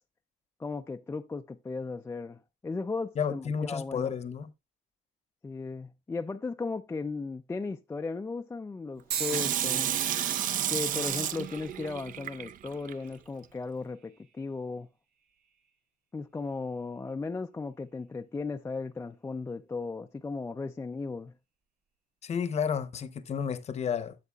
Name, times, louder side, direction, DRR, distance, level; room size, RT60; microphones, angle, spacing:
voice 1, 0.6-4.1 5.4-9.9 10.7-14.9 16.1-21.3, left 4 dB, 15° left, 0.4 m, -36 dB
voice 2, 3.2-4.5 22.2-24.1, left 7 dB, 40° left, 0.8 m, -31 dB
sound 1, 9.1-13.2 13.9-14.4 15.3-15.5, right 8 dB, 70° right, 1.5 m, -41 dB
Water tap faucet / Sink (filling or washing), 9.2-12.9 13.4-13.5, right 10 dB, 55° right, 0.5 m, -31 dB
12.5 x 6.6 x 2.3 m
cardioid pair, 110°, 17 cm